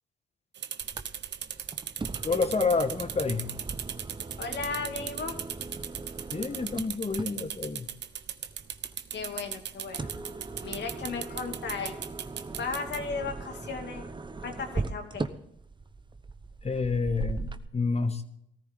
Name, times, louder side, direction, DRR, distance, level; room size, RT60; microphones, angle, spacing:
sound 1, 0.5-13.0, right 9 dB, 60° right, 1.1 m, -37 dB
sound 2, 0.8-17.6, right 3 dB, 25° right, 1.1 m, -40 dB
voice 1, 2.2-3.5 6.3-7.9 16.6-18.2, left 4 dB, 30° left, 9 dB, 1.5 m, -28 dB
voice 2, 4.4-5.4 9.1-10.1 10.6-12.0 12.6-14.1 14.4-15.2, left 4 dB, 60° left, 4 dB, 2.6 m, -35 dB
19.5 x 14.0 x 3.8 m, 0.75 s
supercardioid pair, 55°, 21 cm